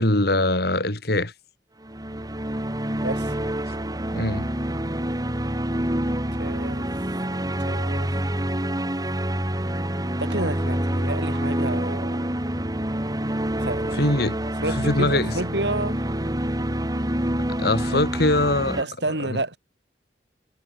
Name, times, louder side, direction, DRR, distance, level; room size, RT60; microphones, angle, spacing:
voice 1, 0.0-1.3 4.1-4.5 14.0-14.4 14.8-15.3 17.6-18.8 19.3-19.4, left 1 dB, 65° left, 4.4 m, -22 dB
sound 1, 1.8-18.8, right 1 dB, 20° right, 3.3 m, -27 dB
voice 2, 3.0-3.4 6.3-6.9 7.6-8.1 10.2-12.3 13.6-14.2 14.6-16.1 17.9-18.0 18.7-19.6, right 2 dB, 75° right, 7.6 m, -30 dB
head